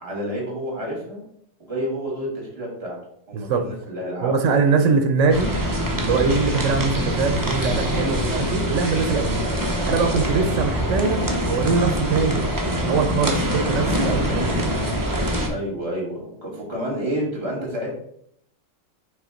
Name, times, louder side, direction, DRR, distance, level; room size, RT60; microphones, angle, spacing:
voice 1, 0.0-1.2 1.7-3.0 3.3-5.0 15.5-17.9, equal, 55° right, -2 dB, 2.6 m, -29 dB
voice 2, 3.3-3.7 4.2-5.5 6.0-9.4 9.9-12.4 12.8-14.7, right 5 dB, 80° right, 6 dB, 1.0 m, -22 dB
sound 1, 5.3-15.5, equal, 20° right, 0.8 m, -24 dB
5.9 x 3.3 x 5.0 m, 0.68 s
omnidirectional pair, 1.3 m